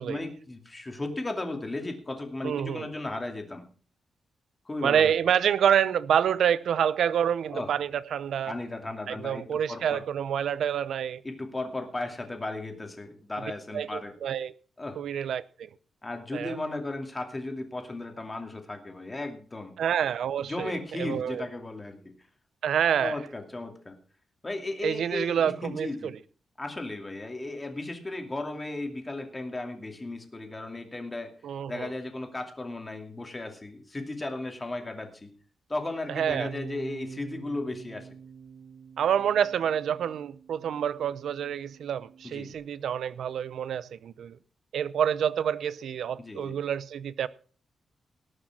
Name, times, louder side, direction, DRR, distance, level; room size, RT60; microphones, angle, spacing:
voice 1, 0.0-3.6 4.7-5.1 7.5-7.7 8.4-10.0 11.2-14.1 14.8-15.0 16.0-19.7 20.4-22.1 23.0-23.9 24.4-26.1 26.6-31.3 31.7-35.3 35.7-38.1 42.2-42.5 46.2-46.6, left 2 dB, 20° left, 2.6 m, -35 dB
voice 2, 2.4-2.9 4.8-8.5 9.1-11.2 13.7-14.5 15.0-15.7 16.3-16.6 19.8-21.4 22.6-23.2 24.8-26.1 31.4-31.9 36.1-36.5 39.0-44.4 44.7-47.3, right 9 dB, 90° right, 0.6 m, -27 dB
Bass guitar, 36.3-42.5, right 5 dB, 55° right, 2.6 m, -46 dB
18.5 x 6.5 x 6.0 m
wide cardioid pair, 120°, 0 cm